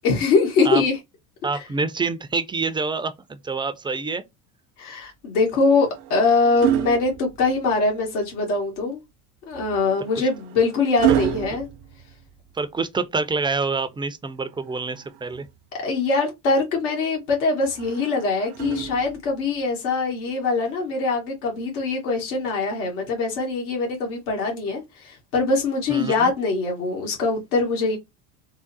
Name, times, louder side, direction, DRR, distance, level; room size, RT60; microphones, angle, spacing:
voice 1, 0.0-1.0 1.6-1.7 4.8-9.0 9.5-11.7 15.7-28.0, left 3 dB, 80° left, 1.8 m, -23 dB
voice 2, 1.4-4.2 10.1-10.3 12.5-15.5 25.9-26.3, right 4 dB, 10° right, 0.5 m, -27 dB
sound 1, 5.5-7.9 9.5-12.7 14.5-15.6 17.6-19.4 20.7-20.9, right 11 dB, 60° right, 0.7 m, -29 dB
3.8 x 2.1 x 3.9 m
hypercardioid pair, 85°, 44 cm